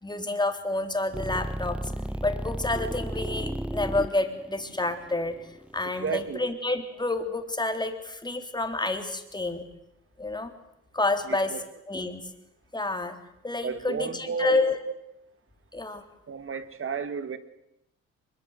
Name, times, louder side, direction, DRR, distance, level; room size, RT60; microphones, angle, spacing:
voice 1, 0.0-1.9 2.2-5.3 5.7-9.7 10.2-10.5 10.9-11.6 11.9-12.2 12.7-13.2 13.4-14.8 15.7-16.0, left 2 dB, 15° left, 3.6 m, -29 dB
sound 1, 1.1-6.3, right 1 dB, 5° right, 0.9 m, -34 dB
voice 2, 6.0-6.4 11.3-11.6 13.6-14.9 16.3-17.4, right 6 dB, 45° right, 2.2 m, -32 dB
23.5 x 22.0 x 8.2 m
cardioid pair, 90°, 30 cm